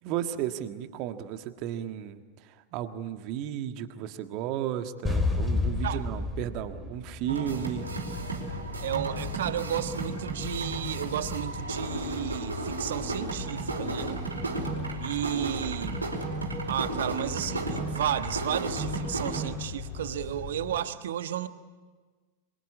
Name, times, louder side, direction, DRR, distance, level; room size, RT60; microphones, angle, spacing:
voice 1, 0.0-7.9, right 10 dB, 40° right, 8 dB, 1.6 m, -34 dB
sound 1, 5.0-8.0, left 3 dB, 10° left, 3.6 m, -30 dB
sound 2, 7.3-19.5, right 3 dB, 80° right, 4.8 m, -34 dB
sound 3, 7.4-20.8, left 4 dB, 40° left, 6.6 m, -39 dB
voice 2, 8.8-14.2 15.0-16.0 16.7-21.5, right 11 dB, 60° right, 11 dB, 1.3 m, -33 dB
27.0 x 23.0 x 8.6 m, 1.4 s
figure-of-eight pair, 90°, 0 cm